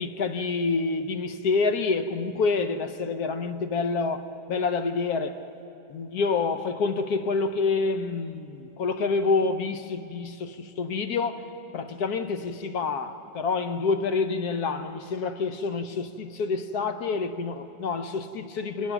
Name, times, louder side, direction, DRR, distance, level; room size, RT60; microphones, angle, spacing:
voice 1, 0.0-5.4 5.9-18.9, left 4 dB, 70° left, 1.3 m, -27 dB
26.5 x 19.0 x 6.0 m
omnidirectional pair, 1.8 m